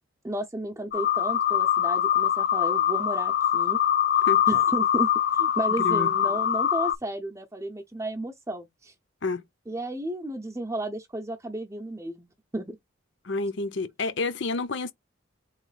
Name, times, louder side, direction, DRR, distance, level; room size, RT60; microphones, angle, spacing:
voice 1, 0.2-3.8 4.5-8.9 9.7-12.8, right 1 dB, 15° right, 0.7 m, -33 dB
sound 1, 0.9-7.0, left 9 dB, 50° left, 0.4 m, -23 dB
voice 2, 5.8-6.1 9.2-9.4 13.2-14.9, left 3 dB, 65° left, 0.7 m, -29 dB
4.0 x 3.1 x 4.0 m
head